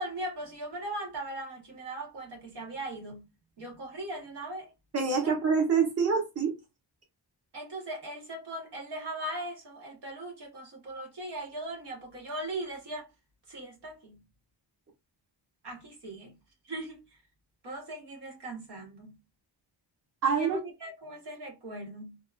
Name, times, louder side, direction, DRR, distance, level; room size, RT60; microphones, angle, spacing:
voice 1, 0.0-3.2 3.6-4.7 5.2-5.3 7.5-13.1 13.5-14.2 15.6-16.3 16.7-17.2 17.6-19.2 20.3-22.2, right 1 dB, 65° right, 0.9 m, -39 dB
voice 2, 4.9-6.5 20.2-20.6, right 5 dB, 35° right, 0.9 m, -26 dB
2.6 x 2.3 x 2.3 m
wide cardioid pair, 165°, 44 cm